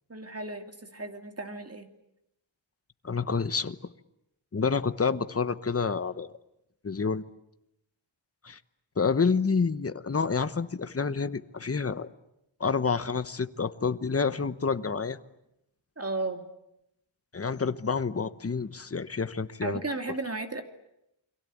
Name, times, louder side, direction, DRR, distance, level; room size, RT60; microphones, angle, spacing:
voice 1, 0.1-1.9 16.0-16.4 19.6-20.6, right 3 dB, 30° right, 6 dB, 2.6 m, -34 dB
voice 2, 3.0-3.8 4.5-6.3 6.8-7.2 8.4-8.6 9.0-12.1 12.6-15.2 17.3-19.8, left 5 dB, 30° left, 12 dB, 1.0 m, -28 dB
29.5 x 23.0 x 8.5 m, 0.84 s
wide cardioid pair, 115°, 47 cm